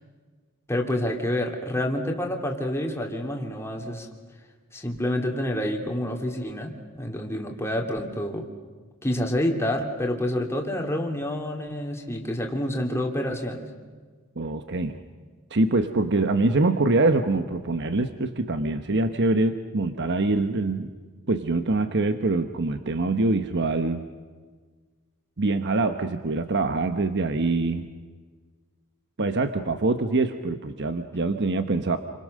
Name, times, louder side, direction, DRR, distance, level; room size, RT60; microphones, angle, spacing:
voice 1, 0.7-4.1 4.7-8.5 9.0-13.7, left 1 dB, 10° left, 2 dB, 2.7 m, -28 dB
voice 2, 14.4-15.0 15.5-20.9 21.3-24.1 25.4-27.9 29.2-32.0, right 2 dB, 55° right, 8 dB, 1.0 m, -24 dB
29.5 x 24.5 x 6.6 m, 1.5 s
head